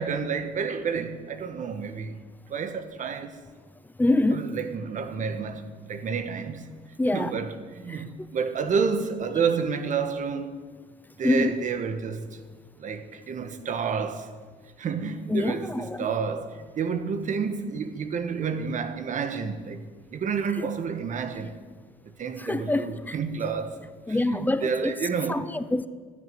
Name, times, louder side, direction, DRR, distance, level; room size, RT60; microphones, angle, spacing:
voice 1, 0.0-2.2 2.5-3.4 4.3-6.7 7.1-10.6 11.2-12.4 12.8-14.3 14.8-19.8 20.1-21.5 22.2-25.4, right 5 dB, 50° right, 1.5 m, -30 dB
voice 2, 4.0-4.5 7.0-7.3 7.9-8.0 11.2-11.5 15.3-16.1 22.4-23.1 24.1-24.9 25.3-25.9, left 2 dB, 10° left, 0.7 m, -25 dB
15.0 x 9.9 x 9.6 m
cardioid pair, 110°, 17 cm